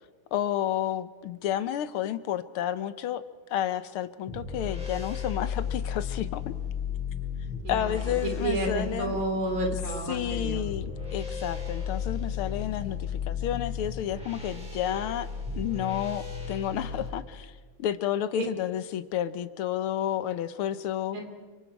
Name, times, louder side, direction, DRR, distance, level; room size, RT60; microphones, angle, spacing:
voice 1, 0.3-3.2 3.5-6.5 7.7-9.2 10.1-15.3 15.6-21.2, left 11 dB, 85° left, 13 dB, 1.8 m, -31 dB
sound 1, 4.3-17.1, left 6 dB, 5° right, 5.6 m, -34 dB
voice 2, 7.6-10.6 21.1-21.3, right 1 dB, 75° right, 2 dB, 4.7 m, -31 dB
29.0 x 25.0 x 4.7 m, 1.4 s
omnidirectional pair, 2.4 m